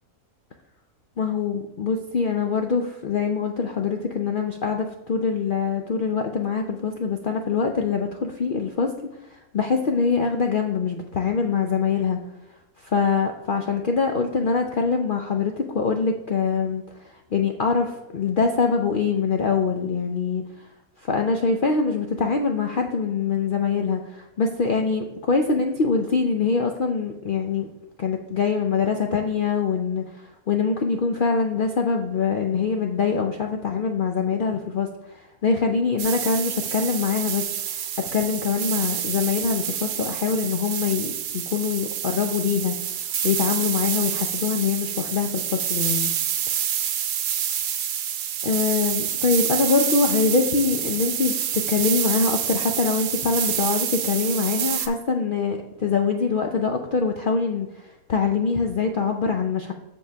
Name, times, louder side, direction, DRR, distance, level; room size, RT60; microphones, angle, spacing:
voice 1, 1.2-8.9 9.3-12.2 12.8-16.8 17.3-20.4 21.0-27.7 28.0-34.9 35.2-42.7 43.2-46.1 48.4-59.7, left 5 dB, 60° left, 3 dB, 0.5 m, -24 dB
sound 1, 36.0-54.9, right 9 dB, 75° right, 1.1 m, -27 dB
7.3 x 6.9 x 3.3 m, 0.92 s
omnidirectional pair, 1.5 m